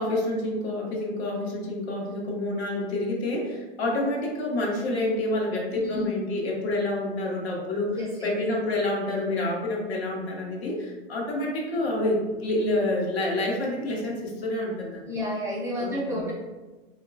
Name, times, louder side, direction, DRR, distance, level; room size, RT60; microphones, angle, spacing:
voice 1, 0.0-15.2 15.8-16.3, left 1 dB, 80° left, -1 dB, 0.9 m, -28 dB
voice 2, 5.7-6.1 7.9-8.3 15.0-16.3, left 1 dB, 10° right, -5 dB, 0.4 m, -31 dB
3.0 x 2.2 x 2.4 m, 1.2 s
hypercardioid pair, 120°, 31 cm